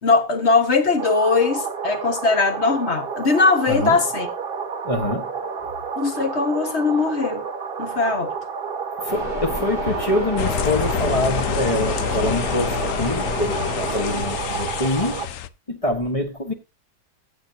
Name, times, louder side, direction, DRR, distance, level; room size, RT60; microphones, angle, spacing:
voice 1, 0.0-4.3 6.0-7.5 7.8-8.3, left 4 dB, 45° left, 1.8 m, -20 dB
sound 1, 1.0-15.3, right 6 dB, 40° right, 1.2 m, -31 dB
voice 2, 3.7-4.0 4.8-5.3 9.0-15.2 15.7-16.5, left 1 dB, 25° left, 1.2 m, -25 dB
sound 2, 9.1-14.2, left 2 dB, 85° left, 3.3 m, -30 dB
sound 3, 10.4-15.5, left 9 dB, 65° left, 0.9 m, -28 dB
15.5 x 7.2 x 2.7 m
omnidirectional pair, 1.7 m